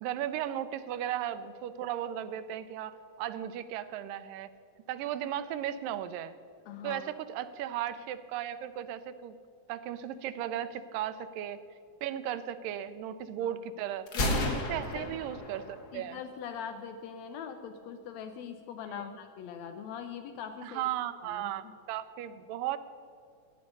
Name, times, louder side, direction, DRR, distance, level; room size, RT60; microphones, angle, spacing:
voice 1, 0.0-4.5 4.9-6.3 6.8-9.4 9.7-11.6 12.0-14.1 14.5-16.2 18.9-19.0 20.6-22.8, right 11 dB, 85° right, 12 dB, 2.2 m, -36 dB
voice 2, 6.7-7.0 13.4-13.6 14.1-15.1 15.9-20.8 21.2-21.7, left 8 dB, 80° left, 6 dB, 1.6 m, -42 dB
Gunshot gunfire, 14.1-16.0, left 1 dB, 50° left, 1.2 m, -32 dB
14.5 x 10.0 x 5.3 m, 2.3 s
omnidirectional pair, 3.9 m